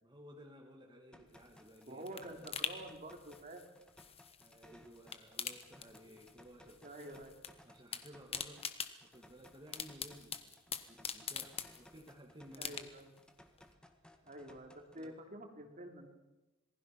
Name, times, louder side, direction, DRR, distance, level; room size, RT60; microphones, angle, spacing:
voice 1, 0.0-2.0 4.4-7.3 7.6-8.7 9.0-12.8 15.0-15.1, equal, 20° right, -1 dB, 2.3 m, -56 dB
sound 1, 1.1-15.1, left 1 dB, 5° left, 1.7 m, -62 dB
sound 2, 1.3-4.6 4.9-6.4 6.7-7.5 7.8-12.1 12.5-13.2 13.6-13.7, left 7 dB, 25° left, 1.3 m, -44 dB
voice 2, 1.9-3.7 6.8-7.3 12.6-13.1 14.2-16.1, right 1 dB, 40° right, 3 dB, 3.1 m, -48 dB
27.0 x 20.0 x 6.0 m, 1.1 s
head